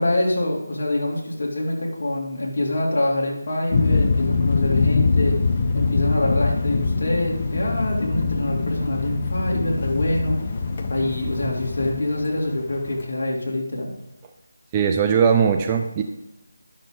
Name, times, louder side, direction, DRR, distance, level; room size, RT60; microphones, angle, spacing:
voice 1, 0.0-5.3 5.7-10.4 10.9-13.9, left 1 dB, 55° left, -2 dB, 2.7 m, -25 dB
sound 1, 3.7-13.1, left 4 dB, 30° left, 0.7 m, -23 dB
voice 2, 14.7-16.0, right 6 dB, 15° right, 4 dB, 0.4 m, -19 dB
10.5 x 6.4 x 3.9 m, 0.92 s
figure-of-eight pair, 170°, 0 cm